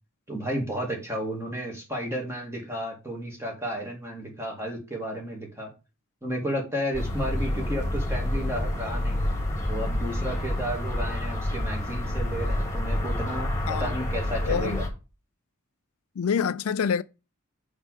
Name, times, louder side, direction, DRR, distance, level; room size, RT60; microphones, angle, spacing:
voice 1, 0.3-5.7 6.2-9.2 9.7-14.8, equal, 10° right, 2.4 m, -32 dB
sound 1, 6.9-14.9, left 1 dB, 15° left, 2.2 m, -28 dB
voice 2, 14.5-14.8 16.2-17.0, left 7 dB, 70° left, 0.4 m, -26 dB
5.4 x 5.0 x 6.2 m
head